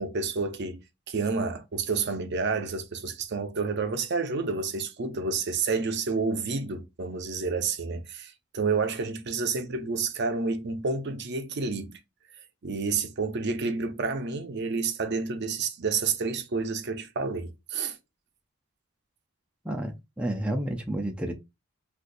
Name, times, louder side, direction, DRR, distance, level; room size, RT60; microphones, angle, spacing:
voice 1, 0.0-12.0 12.6-18.0, right 4 dB, 55° right, 0.5 m, -29 dB
voice 2, 19.6-21.3, right 1 dB, 5° right, 0.4 m, -30 dB
3.9 x 2.4 x 2.5 m
head